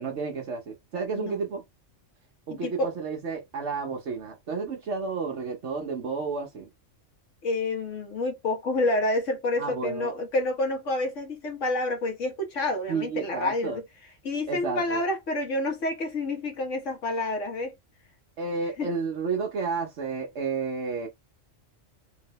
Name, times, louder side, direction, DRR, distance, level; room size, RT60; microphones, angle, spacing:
voice 1, 0.0-1.6 2.5-6.7 9.6-10.1 12.9-13.8 14.5-15.0 18.4-21.1, right 4 dB, 70° right, 1.2 m, -31 dB
voice 2, 2.6-2.9 7.4-13.8 14.2-17.7 18.8-18.9, left 2 dB, 80° left, 1.6 m, -28 dB
3.8 x 2.9 x 3.0 m
omnidirectional pair, 1.3 m